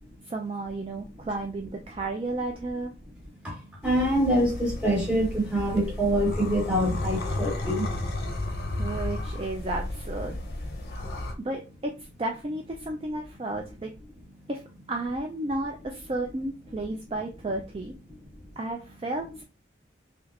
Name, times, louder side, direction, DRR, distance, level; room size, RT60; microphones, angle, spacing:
voice 1, 0.3-2.9 8.2-8.5 8.8-10.4 11.4-11.9 12.2-13.9 14.5-14.6 14.9-17.9 18.6-19.4, right 2 dB, 30° right, 0.3 m, -32 dB
voice 2, 3.4-7.9, equal, 5° right, 1.2 m, -25 dB
sound 1, 3.8-11.3, left 1 dB, 60° left, 0.6 m, -33 dB
3.3 x 3.1 x 2.4 m
head